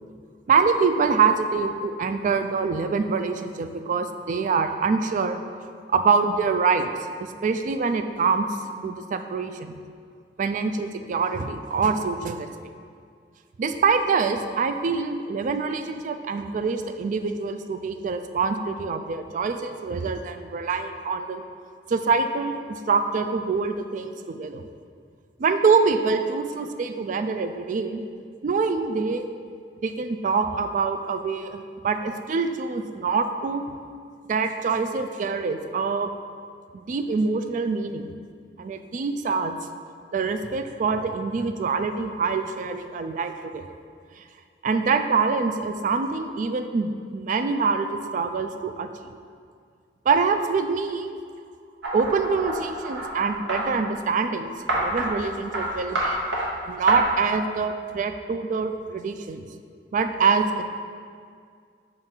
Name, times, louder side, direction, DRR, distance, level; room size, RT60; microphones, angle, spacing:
voice 1, 0.5-5.4 5.6-6.9 7.4-8.5 8.8-9.8 10.4-12.5 13.6-21.4 21.9-24.7 25.4-28.0 28.4-29.3 29.8-33.6 34.3-36.1 36.7-38.1 38.6-39.6 40.1-43.6 44.2-44.3 44.6-49.2 50.1-51.2 51.9-56.2 56.7-59.4 59.9-60.6, right 5 dB, 45° right, 8 dB, 0.3 m, -25 dB
sound 1, 51.8-53.6 54.7-55.1 55.5-55.7 56.0-56.5 56.9-57.0, right 2 dB, 80° right, 1.2 m, -27 dB
6.3 x 3.8 x 4.5 m, 2.2 s
head